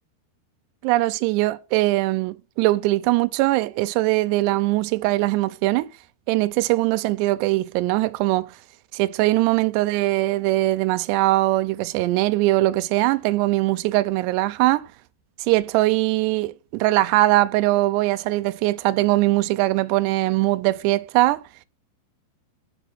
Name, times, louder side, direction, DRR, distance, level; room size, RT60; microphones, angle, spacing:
voice 1, 0.8-5.9 6.3-8.5 8.9-14.9 15.4-21.4, right 18 dB, 80° right, 2.6 m, -21 dB
10.0 x 5.0 x 6.0 m
omnidirectional pair, 5.3 m